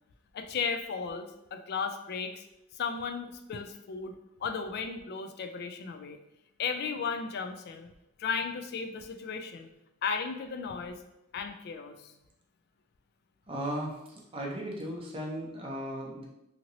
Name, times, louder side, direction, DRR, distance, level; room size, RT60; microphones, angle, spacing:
voice 1, 0.3-2.4 2.7-6.2 6.6-7.9 8.2-9.7 10.0-11.0 11.3-12.1, left 5 dB, 50° left, 7 dB, 0.3 m, -35 dB
voice 2, 13.5-16.2, right 1 dB, 25° right, -2 dB, 0.6 m, -36 dB
2.9 x 2.8 x 2.6 m, 0.88 s
head